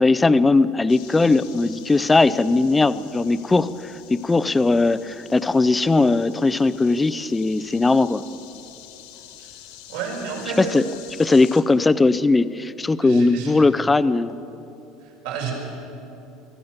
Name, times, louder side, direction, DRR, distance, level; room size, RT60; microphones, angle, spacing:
voice 1, 0.0-8.2 10.6-10.8 11.2-14.4, left 3 dB, 10° left, 15 dB, 0.5 m, -19 dB
sound 1, 0.9-11.6, left 11 dB, 75° left, 2.4 m, -46 dB
voice 2, 9.9-10.7 13.0-13.5 15.0-15.5, right 6 dB, 80° right, -2 dB, 6.2 m, -31 dB
23.5 x 14.5 x 8.0 m, 2.9 s
cardioid pair, 155°, 0 cm